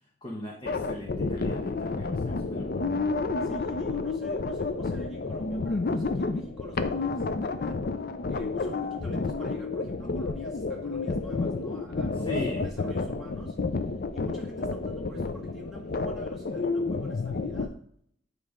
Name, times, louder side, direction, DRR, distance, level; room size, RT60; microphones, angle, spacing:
voice 1, 0.2-2.9 12.1-12.6, left 1 dB, 25° left, -2 dB, 1.0 m, -38 dB
sound 1, 0.6-17.7, left 3 dB, 50° left, 0.5 m, -30 dB
voice 2, 3.4-7.8 8.3-12.4 12.6-13.6 14.1-17.8, right 1 dB, ahead, -5 dB, 1.7 m, -47 dB
9.3 x 3.3 x 4.9 m, 0.65 s
head